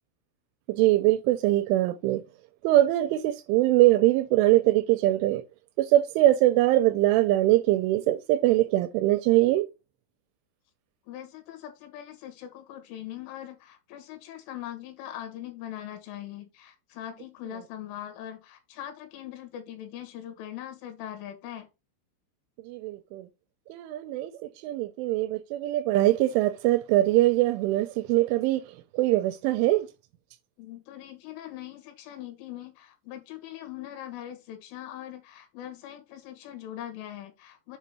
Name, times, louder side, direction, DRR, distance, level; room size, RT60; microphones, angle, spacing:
voice 1, 0.7-2.2 2.6-5.4 5.8-9.7 22.7-23.3 23.7-24.3 24.6-28.6 28.9-29.9, right 15 dB, 85° right, 2.8 m, -22 dB
voice 2, 11.1-21.7 30.6-37.8, left 12 dB, 80° left, 3.7 m, -41 dB
7.7 x 2.8 x 6.0 m
omnidirectional pair, 5.7 m